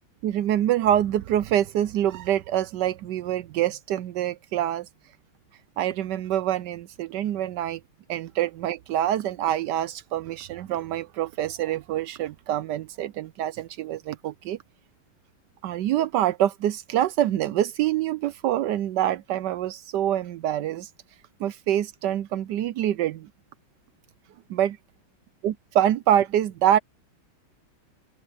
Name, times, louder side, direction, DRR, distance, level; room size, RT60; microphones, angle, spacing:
voice 1, 0.2-4.9 5.8-7.8 8.1-14.6 15.6-20.9 21.4-23.3 24.5-24.8 25.4-26.8, right 11 dB, 75° right, 1.0 m, -25 dB
open air
omnidirectional pair, 2.3 m